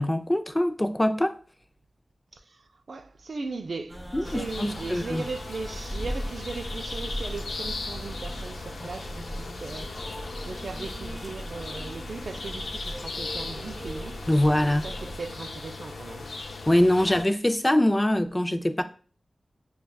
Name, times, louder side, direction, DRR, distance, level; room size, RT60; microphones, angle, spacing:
voice 1, 0.0-1.4 4.1-5.2 14.3-14.9 16.7-18.8, left 1 dB, 20° left, 0.4 m, -23 dB
voice 2, 2.3-9.9 10.5-14.1 14.7-16.3, right 4 dB, 70° right, 0.4 m, -38 dB
sound 1, 3.9-15.2, equal, 5° right, 0.7 m, -38 dB
sound 2, 4.2-17.2, left 3 dB, 85° left, 0.4 m, -38 dB
6.2 x 2.3 x 2.3 m
cardioid pair, 50°, 0 cm